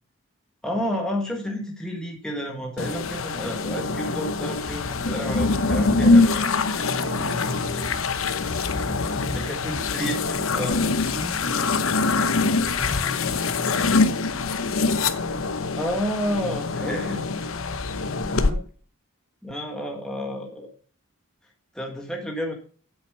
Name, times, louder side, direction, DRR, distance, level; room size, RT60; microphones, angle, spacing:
voice 1, 0.6-6.5 9.3-10.2 10.5-10.9 15.8-17.3 19.4-20.7 21.7-22.5, equal, 5° left, 0 dB, 1.6 m, -30 dB
sound 1, 2.8-18.5, left 3 dB, 75° left, 0.9 m, -24 dB
voice 2, 6.8-14.5 18.0-18.7, left 1 dB, 35° right, 0 dB, 2.5 m, -37 dB
8.2 x 7.4 x 5.6 m, 0.42 s
head